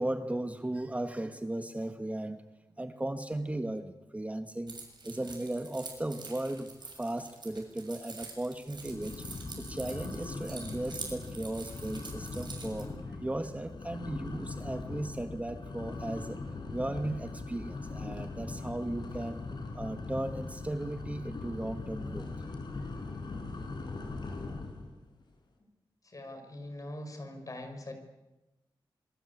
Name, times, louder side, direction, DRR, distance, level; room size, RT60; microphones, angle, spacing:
voice 1, 0.0-2.4 2.8-9.2 9.6-16.4 16.7-19.4 19.7-22.3, right 1 dB, 15° right, 8 dB, 1.4 m, -36 dB
Keys jangling, 4.7-12.8, right 4 dB, 55° right, 7.1 m, -46 dB
sound 1, 6.6-7.0 7.2-7.6 8.1-8.2 8.7-24.9, left 3 dB, 55° left, 5.9 m, -40 dB
voice 2, 26.0-27.9, left 1 dB, 40° left, 6 dB, 5.9 m, -42 dB
26.5 x 24.0 x 8.5 m, 1.0 s
wide cardioid pair, 100°, 9 cm